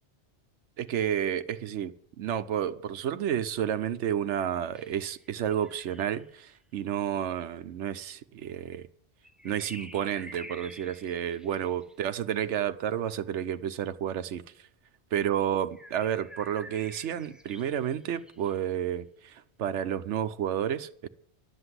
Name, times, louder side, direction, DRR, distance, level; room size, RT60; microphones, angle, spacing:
voice 1, 0.8-8.9 9.4-14.4 15.1-21.1, right 9 dB, 90° right, 1.0 m, -31 dB
sound 1, 4.7-6.3 9.2-12.0 15.7-18.7, equal, ahead, 0.9 m, -49 dB
12.0 x 7.8 x 9.7 m
omnidirectional pair, 1.2 m